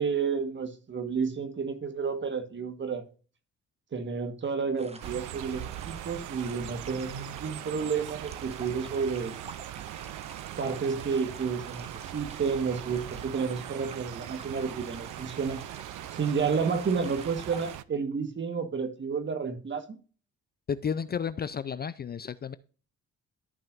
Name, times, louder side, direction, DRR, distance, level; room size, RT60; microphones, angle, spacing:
voice 1, 0.0-3.0 3.9-9.4 10.6-15.6 16.2-20.0, right 5 dB, 40° right, 1.5 m, -31 dB
sound 1, 4.8-17.8, right 3 dB, 20° right, 1.0 m, -49 dB
sound 2, 5.0-17.8, right 14 dB, 75° right, 0.5 m, -41 dB
voice 2, 20.7-22.5, left 7 dB, 35° left, 0.4 m, -32 dB
13.5 x 5.6 x 2.5 m
cardioid pair, 90°, 30 cm